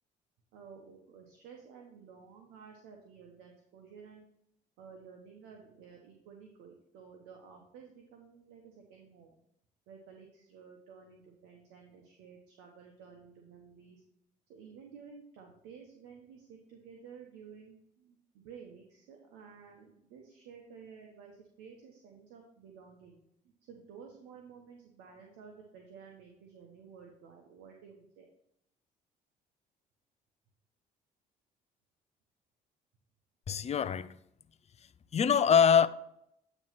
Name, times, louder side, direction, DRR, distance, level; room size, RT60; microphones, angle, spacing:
voice 1, 0.5-4.2 4.8-9.3 9.9-14.0 14.5-23.2 23.6-28.3, right 6 dB, 80° right, 1.0 m, -53 dB
voice 2, 33.5-34.2 35.1-35.9, left 7 dB, 35° left, 0.5 m, -24 dB
9.0 x 3.1 x 5.8 m
supercardioid pair, 60°, 18 cm